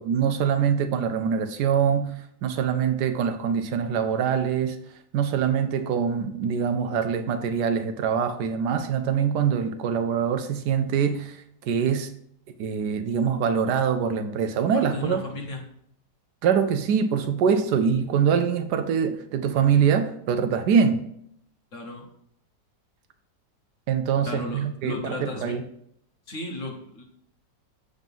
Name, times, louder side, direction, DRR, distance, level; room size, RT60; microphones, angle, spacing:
voice 1, 0.0-4.8 5.1-12.1 12.6-15.2 16.4-21.0 23.9-25.6, right 7 dB, 75° right, 9 dB, 1.1 m, -24 dB
voice 2, 14.7-15.6 21.7-22.0 24.2-25.5 26.3-27.0, left 2 dB, 50° left, 1 dB, 1.4 m, -34 dB
7.4 x 4.0 x 5.4 m, 0.71 s
omnidirectional pair, 1.9 m